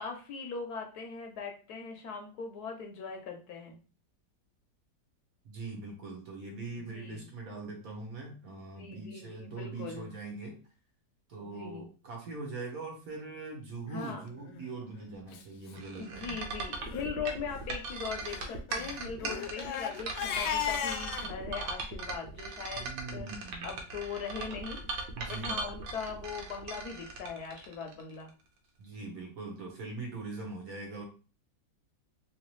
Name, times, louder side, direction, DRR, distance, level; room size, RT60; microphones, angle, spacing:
voice 1, 0.0-3.8 6.9-7.3 8.7-10.1 11.4-11.9 13.9-14.3 16.0-23.3 23.6-24.8 25.3-28.3, left 5 dB, 70° left, 3 dB, 1.0 m, -40 dB
voice 2, 5.4-10.6 11.3-16.2 22.7-23.7 25.1-25.5 28.8-31.0, right 3 dB, 55° right, 1 dB, 1.3 m, -42 dB
Crying sobbing, 14.4-14.7 15.3-15.4 15.7-15.8 16.1-16.4 16.8-17.1 18.2-21.3, left 8 dB, 90° left, 1.3 m, -36 dB
sound 1, 15.7-28.3, right 3 dB, 85° right, 1.4 m, -39 dB
3.1 x 2.9 x 3.0 m, 0.36 s
omnidirectional pair, 1.9 m